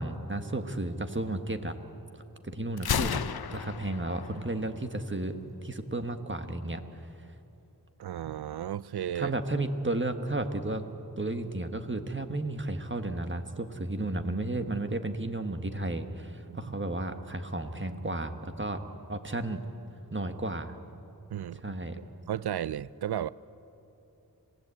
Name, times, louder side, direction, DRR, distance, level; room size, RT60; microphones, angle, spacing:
voice 1, 0.0-1.7 2.4-3.2 3.5-5.4 5.6-7.1 9.1-10.8 11.2-18.8 19.1-19.6 20.1-20.7 21.6-22.0, right 2 dB, 30° right, 7 dB, 1.5 m, -33 dB
Gunshot gunfire, 2.8-4.7, left 8 dB, 75° left, 0.7 m, -33 dB
voice 2, 8.0-9.3 16.5-16.6 21.3-21.7 22.3-23.3, right 10 dB, 90° right, 19 dB, 0.5 m, -34 dB
26.5 x 16.5 x 8.5 m, 2.9 s
wide cardioid pair, 60°, 37 cm